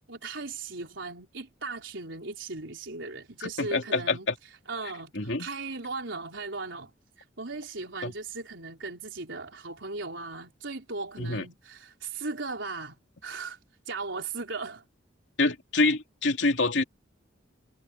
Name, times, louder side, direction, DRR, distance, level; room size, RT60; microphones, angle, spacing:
voice 1, 0.1-4.3 4.7-6.9 7.2-13.0 13.2-13.6 13.9-14.8, right 3 dB, 75° right, 3.9 m, -37 dB
voice 2, 3.4-4.3 5.1-5.5 8.0-8.1 11.2-11.4 15.4-16.8, left 3 dB, 70° left, 2.8 m, -26 dB
head